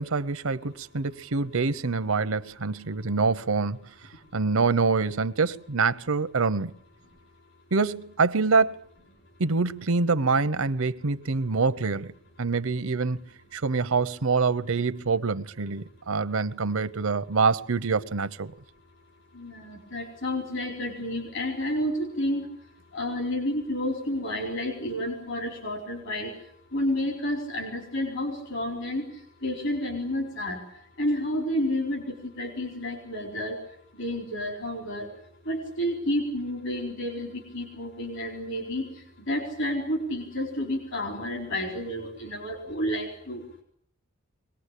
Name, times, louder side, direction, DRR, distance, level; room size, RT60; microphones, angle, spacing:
voice 1, 0.0-3.8 4.3-6.7 7.7-8.8 9.4-12.1 12.4-13.2 13.5-18.5, right 4 dB, 80° right, 0.9 m, -25 dB
voice 2, 19.3-22.5 22.9-26.3 26.7-29.1 29.4-30.6 31.0-33.6 34.0-35.1 35.4-43.4, left 1 dB, 60° left, 4.4 m, -30 dB
24.0 x 19.0 x 8.4 m
head